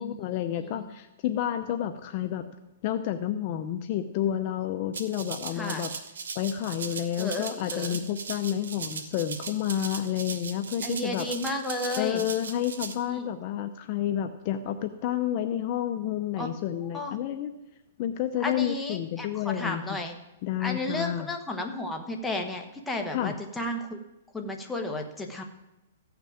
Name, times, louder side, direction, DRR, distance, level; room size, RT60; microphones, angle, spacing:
voice 1, 0.0-2.5 2.8-5.9 6.3-11.3 12.0-17.5 18.0-20.0 20.4-21.3 23.1-23.3, left 11 dB, 35° left, 7 dB, 0.7 m, -30 dB
Rattle (instrument), 4.9-12.9, right 5 dB, 90° right, 1.5 m, -38 dB
voice 2, 5.6-5.9 7.2-8.0 10.8-12.2 13.0-13.3 16.4-16.5 16.9-17.1 18.4-20.2 20.6-24.0 24.3-25.4, left 2 dB, 5° left, 1 dB, 1.2 m, -33 dB
14.5 x 6.0 x 8.6 m, 0.94 s
hypercardioid pair, 160°, 0 cm